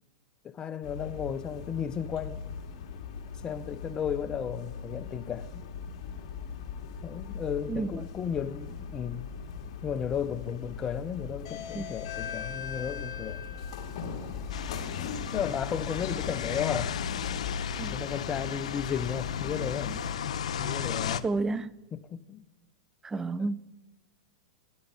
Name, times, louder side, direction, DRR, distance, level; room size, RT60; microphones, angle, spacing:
voice 1, 0.4-2.4 3.4-5.6 7.0-9.2 9.8-13.5 15.3-16.9 17.8-20.0 20.6-21.2 21.9-22.4 23.2-23.3, left 8 dB, 20° left, 0.7 m, -34 dB
sound 1, 0.8-20.2, left 6 dB, 55° left, 2.1 m, -39 dB
voice 2, 7.7-8.0 11.7-12.0 17.8-18.0 21.2-21.8 23.0-23.6, right 3 dB, 10° right, 0.5 m, -31 dB
sound 2, 14.5-21.2, left 8 dB, 85° left, 0.8 m, -34 dB
14.0 x 10.0 x 9.6 m
hypercardioid pair, 135°, 4 cm